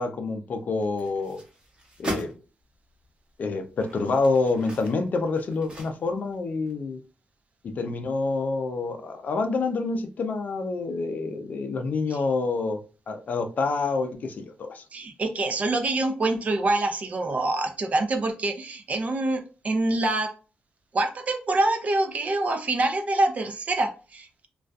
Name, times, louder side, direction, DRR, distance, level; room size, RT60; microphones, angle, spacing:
voice 1, 0.0-1.4 2.0-2.3 3.4-7.0 7.8-12.8 13.1-14.8, left 3 dB, 55° left, 7 dB, 0.4 m, -27 dB
sound 1, 0.8-2.4 3.0-3.1 3.7-6.3 6.7-6.8, right 1 dB, 30° right, 1.1 m, -38 dB
voice 2, 14.9-20.3 20.9-24.5, right 2 dB, 45° right, 5 dB, 0.5 m, -25 dB
2.5 x 2.2 x 2.3 m, 0.35 s
cardioid pair, 100°, 3 cm